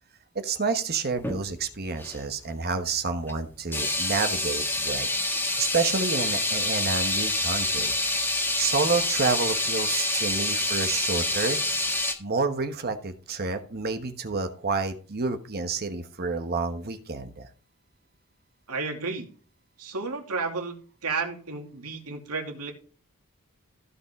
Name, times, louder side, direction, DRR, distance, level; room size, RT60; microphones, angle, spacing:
voice 1, 0.3-5.1 5.6-7.9 8.6-11.6 12.2-17.5, right 4 dB, 45° right, 8 dB, 1.2 m, -29 dB
sound 1, 1.1-1.4 2.0-2.2 3.3-3.4 3.7-12.1, left 2 dB, 10° left, 1.6 m, -27 dB
voice 2, 18.7-19.3 19.8-20.8 21.0-22.7, right 4 dB, 85° right, 3 dB, 2.7 m, -32 dB
15.5 x 5.6 x 3.7 m, 0.40 s
head